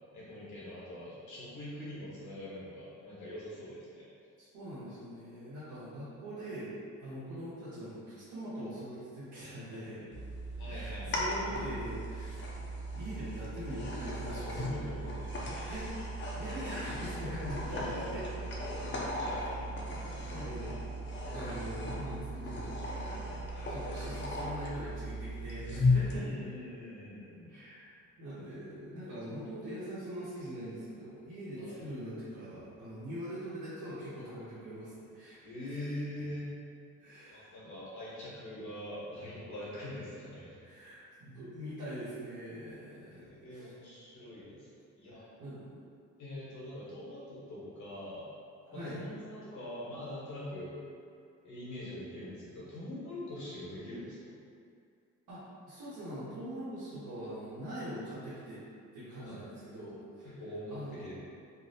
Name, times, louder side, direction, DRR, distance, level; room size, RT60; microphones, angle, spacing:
voice 1, 0.1-4.1 9.7-10.0 10.6-11.3 14.6-15.3 15.6-15.8 17.7-18.3 19.1-20.8 23.5-23.7 26.1-27.5 31.6-31.8 35.4-36.5 37.3-40.6 43.1-44.7 45.0-45.3 46.2-48.3 48.7-50.8 51.4-54.3 59.2-59.5 60.2-61.1, left 1 dB, 75° left, -8 dB, 1.1 m, -43 dB
voice 2, 4.4-6.7 7.0-10.0 10.7-12.4 12.9-15.1 15.7-15.9 16.4-18.2 19.1-19.5 19.9-20.8 21.3-23.2 23.7-26.3 27.5-27.9 28.2-35.8 37.0-37.5 40.6-43.2 43.5-43.7 45.4-45.7 48.7-49.0 55.3-58.6 58.9-60.3 60.7-61.1, equal, 80° right, -13 dB, 0.9 m, -43 dB
sound 1, 10.1-26.2, left 1 dB, 40° left, 0.5 m, -36 dB
2.6 x 2.0 x 2.7 m, 2.4 s
cardioid pair, 90°, 30 cm